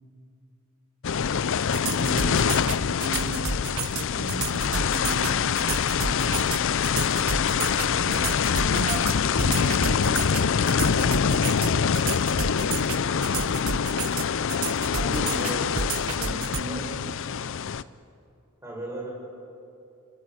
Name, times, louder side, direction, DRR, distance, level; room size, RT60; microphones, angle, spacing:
sound 1, 1.0-17.8, left 6 dB, 60° left, 0.5 m, -25 dB
sound 2, 1.7-16.6, right 6 dB, 70° right, 0.9 m, -31 dB
voice 1, 1.9-2.5 2.9-3.7 4.0-6.5 7.2-11.9 13.3-14.0 14.9-15.7 16.2-17.2 17.6-17.9, right 2 dB, 55° right, 2 dB, 1.8 m, -38 dB
voice 2, 14.9-15.7 16.6-16.9 18.6-19.1, right 1 dB, 10° right, -2 dB, 6.9 m, -36 dB
28.5 x 20.5 x 8.1 m, 2.6 s
head